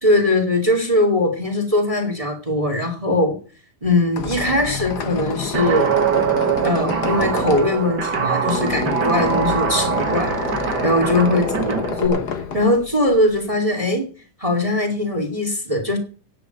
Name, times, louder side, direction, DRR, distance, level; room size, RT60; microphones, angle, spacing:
voice 1, 0.0-3.4 3.8-6.0 6.6-10.3 10.8-12.2 12.5-14.1 14.4-16.0, left 1 dB, 10° right, 6 dB, 2.1 m, -20 dB
Squeak, 3.8-13.5, left 6 dB, 85° left, 0.9 m, -30 dB
Guitar, 5.5-12.1, right 6 dB, 45° right, 1.4 m, -22 dB
9.6 x 8.4 x 9.2 m, 0.39 s
omnidirectional pair, 3.8 m